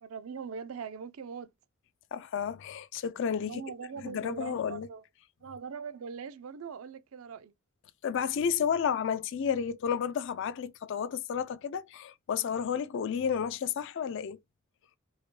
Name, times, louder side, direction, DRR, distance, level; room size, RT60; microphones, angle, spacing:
voice 1, 0.0-1.5 3.4-5.0 5.4-7.5, right 6 dB, 85° right, 0.5 m, -41 dB
voice 2, 2.1-3.6 4.0-4.9 8.0-14.4, left 7 dB, 60° left, 0.3 m, -31 dB
4.6 x 2.1 x 3.0 m
head